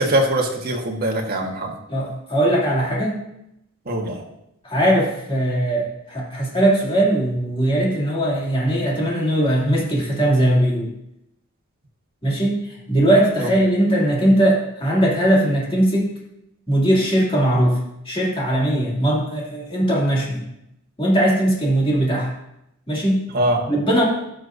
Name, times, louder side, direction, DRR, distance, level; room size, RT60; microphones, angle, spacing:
voice 1, 0.0-1.7 3.9-4.2 23.3-23.6, right 1 dB, 50° right, 1 dB, 1.5 m, -22 dB
voice 2, 1.9-3.2 4.6-10.9 12.2-16.1 16.7-17.8 18.0-20.4 21.0-22.3 22.9-23.3 23.7-24.0, right 1 dB, 25° left, -4 dB, 2.6 m, -19 dB
16.0 x 6.4 x 2.7 m, 0.82 s
head